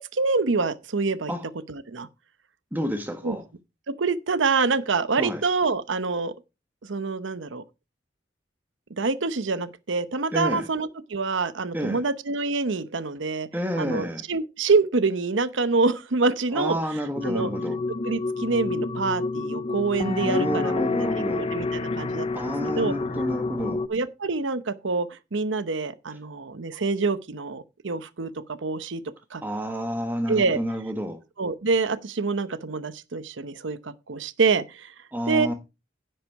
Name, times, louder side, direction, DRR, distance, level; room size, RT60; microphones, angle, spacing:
voice 1, 0.0-1.3 1.7-2.1 3.2-3.4 3.9-6.3 6.8-7.6 9.0-13.5 13.8-16.8 17.2-17.5 18.0-20.7 21.1-22.5 22.8-22.9 23.9-29.0 29.3-29.4 30.3-30.6 31.4-34.9 35.3-35.5, right 4 dB, 80° right, 0.8 m, -26 dB
voice 2, 2.7-3.4 5.2-5.4 10.3-10.7 11.7-12.0 13.5-14.2 16.5-17.8 20.2-21.4 22.3-23.8 29.4-31.2 35.1-35.5, equal, 10° right, 1.2 m, -29 dB
sound 1, 17.2-23.9, left 3 dB, 30° left, 0.5 m, -28 dB
10.5 x 7.8 x 4.6 m
head